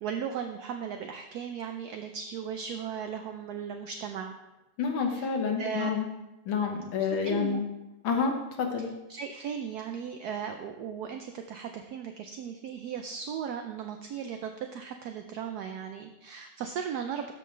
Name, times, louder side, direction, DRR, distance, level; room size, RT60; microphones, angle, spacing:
voice 1, 0.0-4.3 5.1-5.9 7.0-7.6 8.8-17.3, right 7 dB, 75° right, 6 dB, 0.9 m, -37 dB
voice 2, 4.8-6.1 6.5-7.7 8.0-8.9, left 5 dB, 85° left, 2 dB, 1.9 m, -29 dB
13.0 x 5.4 x 3.2 m, 0.98 s
omnidirectional pair, 2.1 m